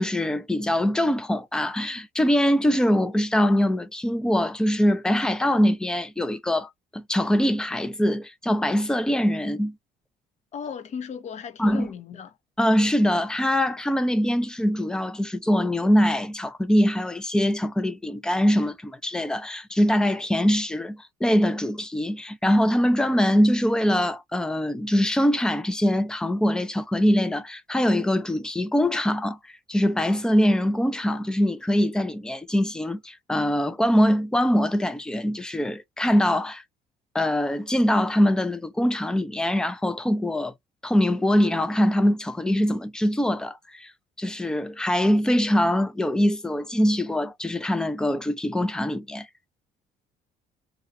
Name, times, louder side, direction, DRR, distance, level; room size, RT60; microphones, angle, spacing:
voice 1, 0.0-9.7 11.6-11.9 12.6-29.4 29.7-36.6 37.1-40.5 40.8-43.9 44.2-49.3, equal, 5° left, 0.4 m, -23 dB
voice 2, 10.5-12.3, left 7 dB, 45° left, 0.6 m, -36 dB
2.3 x 2.3 x 2.6 m
cardioid pair, 110°, 17 cm